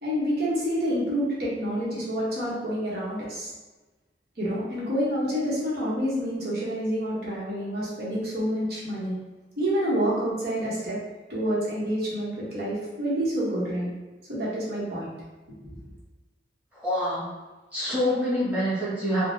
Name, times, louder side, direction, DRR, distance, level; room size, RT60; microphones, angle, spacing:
voice 1, 0.0-3.5 4.4-9.1 9.6-11.0 11.3-13.9 14.3-15.1 15.6-15.8, equal, 60° right, -6 dB, 1.0 m, -28 dB
voice 2, 16.7-17.3 17.7-19.3, equal, 10° right, -11 dB, 1.3 m, -26 dB
3.6 x 2.0 x 2.7 m, 1.2 s
head